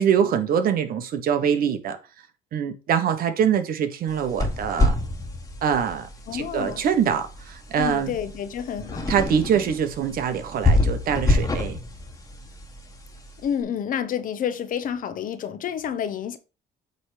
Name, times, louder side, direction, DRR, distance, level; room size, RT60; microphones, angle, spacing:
voice 1, 0.0-2.0 2.5-5.0 5.6-6.1 6.3-8.1 9.1-11.8, right 8 dB, 60° right, 1.2 m, -24 dB
sound 1, 4.1-13.5, left 2 dB, 20° left, 1.6 m, -27 dB
voice 2, 6.3-6.9 7.8-9.2 13.4-16.4, left 8 dB, 55° left, 0.9 m, -29 dB
8.1 x 3.5 x 5.1 m
cardioid pair, 110°, 17 cm